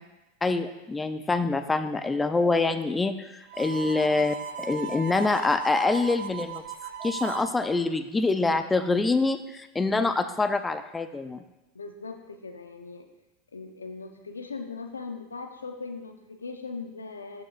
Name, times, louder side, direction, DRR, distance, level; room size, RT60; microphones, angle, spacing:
voice 1, 0.4-6.6 7.0-11.4, left 3 dB, 15° left, 9 dB, 0.6 m, -25 dB
Harmonica, 3.5-7.5, right 7 dB, 60° right, 0.7 m, -37 dB
voice 2, 11.7-13.1 13.5-17.4, left 4 dB, 85° left, 5 dB, 0.8 m, -39 dB
14.0 x 6.2 x 2.5 m, 0.98 s
hypercardioid pair, 85°, 0 cm